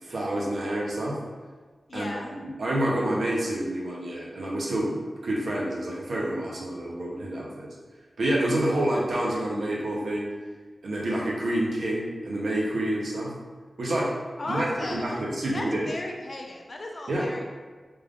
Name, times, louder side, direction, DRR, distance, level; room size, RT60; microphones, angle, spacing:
voice 1, 0.0-1.2 1.9-7.7 8.2-10.3 10.8-13.3 13.8-14.1 14.5-15.9 17.1-17.3, right 1 dB, 80° right, -4 dB, 0.8 m, -28 dB
voice 2, 1.9-2.3 14.4-15.2 15.5-17.5, left 2 dB, 40° left, 1 dB, 0.4 m, -35 dB
3.5 x 2.4 x 3.5 m, 1.4 s
wide cardioid pair, 105°, 0 cm